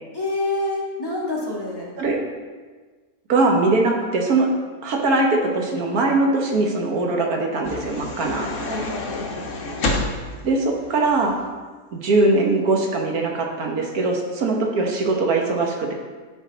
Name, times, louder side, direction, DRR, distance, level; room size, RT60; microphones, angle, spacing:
voice 1, 0.1-1.9 8.7-9.9, left 2 dB, 15° left, -5 dB, 1.4 m, -28 dB
voice 2, 3.3-4.5 4.8-8.5 10.4-11.3 11.9-15.9, right 2 dB, 70° right, 1 dB, 1.5 m, -21 dB
sound 1, 7.6-11.5, left 2 dB, 60° left, 1.1 m, -29 dB
10.0 x 4.4 x 4.0 m, 1.4 s
omnidirectional pair, 1.7 m